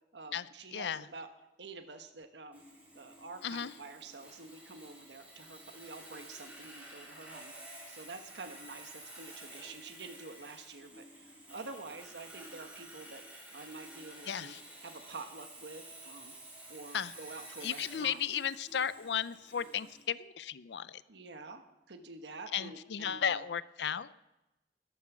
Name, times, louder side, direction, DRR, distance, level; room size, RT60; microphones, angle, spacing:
voice 1, 0.1-1.3 1.6-2.6 2.9-7.5 7.9-13.2 13.5-16.3 16.7-18.2 21.1-21.6 21.9-23.4, right 3 dB, 75° right, 6 dB, 1.2 m, -48 dB
voice 2, 0.7-1.0 3.4-3.7 14.3-14.6 16.9-17.1 17.6-21.0 22.5-24.1, left 8 dB, 70° left, 17 dB, 0.5 m, -35 dB
Sawing, 2.5-20.0, right 1 dB, 10° right, 3.8 m, -51 dB
14.0 x 12.5 x 6.1 m, 0.94 s
head